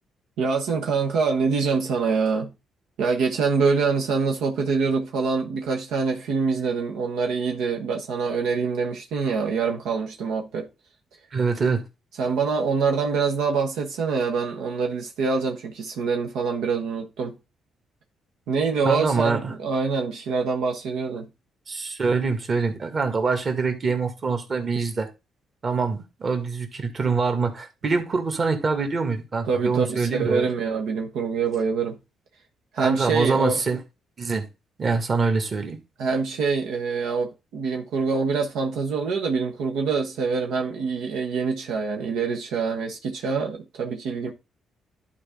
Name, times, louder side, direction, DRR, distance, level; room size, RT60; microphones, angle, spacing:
voice 1, 0.4-2.5 3.0-10.7 12.2-17.3 18.5-21.3 29.5-32.0 32.7-33.6 36.0-44.3, right 5 dB, 85° right, 1.2 m, -25 dB
voice 2, 11.3-11.8 18.8-19.5 21.7-25.1 25.6-30.4 32.8-33.8 34.2-34.5 34.8-35.8, right 4 dB, 40° right, 1.9 m, -24 dB
11.0 x 4.2 x 3.7 m
cardioid pair, 90°, 0 cm